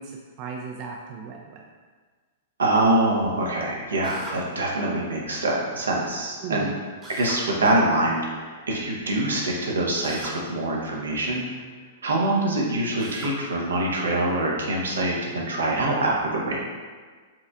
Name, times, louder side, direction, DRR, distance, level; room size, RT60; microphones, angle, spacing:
voice 1, 0.0-1.6 6.4-6.8, right 5 dB, 45° right, 0 dB, 0.3 m, -36 dB
voice 2, 2.6-6.7 7.2-11.5 12.0-16.6, right 2 dB, 85° right, -2 dB, 0.7 m, -24 dB
Drill, 4.0-4.4 7.0-7.4 10.0-10.4 13.0-13.4, right 1 dB, 20° right, 0.9 m, -38 dB
4.4 x 2.5 x 2.4 m, 1.5 s
hypercardioid pair, 110°, 0 cm